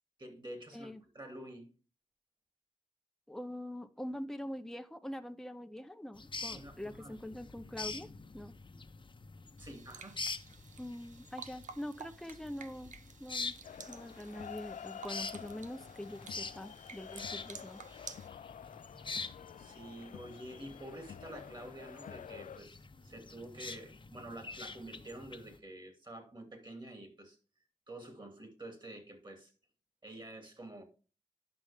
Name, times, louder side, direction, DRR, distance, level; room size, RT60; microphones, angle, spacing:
voice 1, 0.2-1.7 6.5-7.3 9.6-10.2 19.6-27.4 27.9-29.5 30.0-30.8, right 1 dB, 35° right, 2.6 m, -48 dB
voice 2, 3.3-8.6 10.8-12.9 13.2-13.6 13.9-17.8, left 1 dB, 5° left, 0.6 m, -44 dB
sound 1, 6.2-25.6, left 4 dB, 40° left, 0.8 m, -46 dB
sound 2, 9.6-18.3, right 6 dB, 75° right, 0.5 m, -53 dB
sound 3, 13.6-22.6, left 8 dB, 75° left, 0.4 m, -49 dB
9.9 x 6.0 x 3.5 m
cardioid pair, 50°, 13 cm